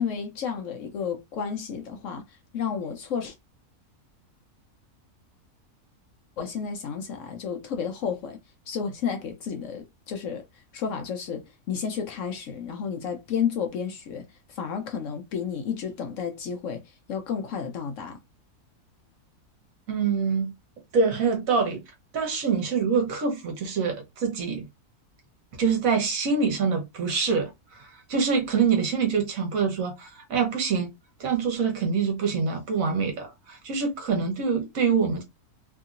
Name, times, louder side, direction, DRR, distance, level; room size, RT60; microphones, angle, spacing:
voice 1, 0.0-3.3 6.4-8.4 8.7-10.4 10.7-16.8 17.1-18.2, left 7 dB, 65° left, 0.9 m, -31 dB
voice 2, 19.9-20.5 20.9-21.8 22.1-24.6 25.6-30.9 31.2-35.2, right 5 dB, 65° right, 1.2 m, -25 dB
2.9 x 2.7 x 2.4 m
omnidirectional pair, 1.6 m